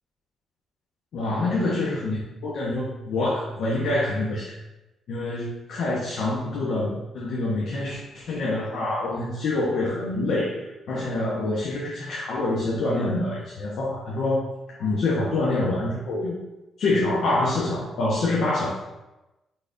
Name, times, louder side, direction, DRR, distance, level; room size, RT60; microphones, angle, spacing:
voice 1, 1.1-4.5 5.1-14.5 14.8-16.4 16.8-18.8, left 2 dB, 70° left, -5 dB, 1.3 m, -26 dB
8.8 x 4.0 x 2.8 m, 1.0 s
cardioid pair, 95°, 0 cm